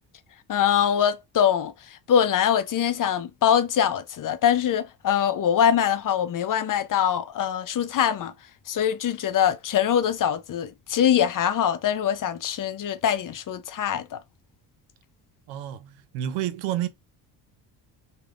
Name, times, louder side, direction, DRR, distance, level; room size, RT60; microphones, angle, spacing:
voice 1, 0.5-1.7 2.1-8.3 8.7-14.2, left 9 dB, 40° left, 0.6 m, -23 dB
voice 2, 15.5-16.9, right 11 dB, 85° right, 0.6 m, -30 dB
3.3 x 2.5 x 2.4 m
hypercardioid pair, 55°, 48 cm